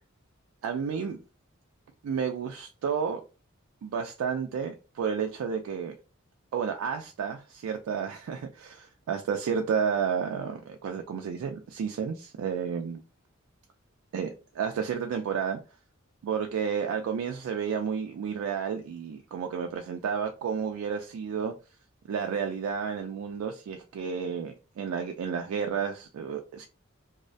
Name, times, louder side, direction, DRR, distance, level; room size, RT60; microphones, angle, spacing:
voice 1, 0.6-1.2 2.0-3.2 3.8-5.9 6.5-13.0 14.1-14.3 14.6-15.6 16.2-21.5 22.1-26.7, right 6 dB, 85° right, 0.3 m, -31 dB
2.3 x 2.1 x 2.5 m
head